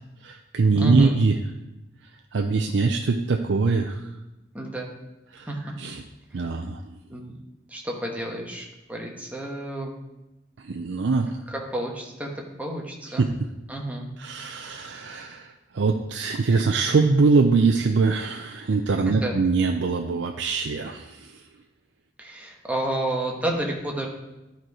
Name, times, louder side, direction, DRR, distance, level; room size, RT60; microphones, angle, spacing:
voice 1, 0.2-1.3 2.3-4.0 5.3-5.5 5.8-6.0 6.3-6.8 10.6-11.3 13.2-13.3 14.2-21.3, right 4 dB, 85° right, 4 dB, 0.5 m, -23 dB
voice 2, 0.8-1.2 4.5-4.9 5.5-5.7 6.3-6.5 7.1-7.4 7.7-9.9 11.5-12.3 12.6-13.3 13.7-14.1 19.0-19.4 22.2-24.1, right 1 dB, 10° right, 0 dB, 1.3 m, -30 dB
11.5 x 4.6 x 4.8 m, 0.98 s
head